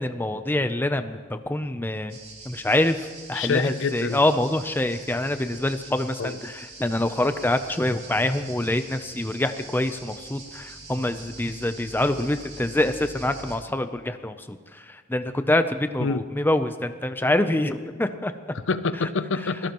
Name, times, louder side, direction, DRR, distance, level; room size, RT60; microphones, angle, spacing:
voice 1, 0.0-2.2 2.5-18.5, left 1 dB, 10° left, 9 dB, 0.6 m, -25 dB
sound 1, 2.1-13.6, right 3 dB, 30° right, 2.8 m, -44 dB
voice 2, 3.3-4.2 6.2-6.4 16.0-16.2 18.5-19.7, left 4 dB, 65° left, 13 dB, 0.6 m, -26 dB
24.5 x 17.0 x 3.0 m, 1.5 s
head